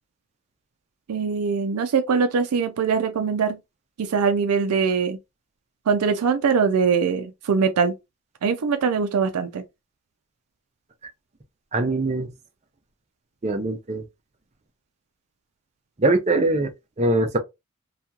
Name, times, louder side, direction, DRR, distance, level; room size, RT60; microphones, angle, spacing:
voice 1, 1.1-3.6 4.0-5.2 5.9-7.9 8.4-9.6, right 5 dB, 85° right, 0.4 m, -22 dB
voice 2, 11.7-12.3 13.4-14.0 16.0-16.7 17.0-17.4, right 2 dB, 30° right, 0.5 m, -22 dB
2.8 x 2.3 x 2.2 m
head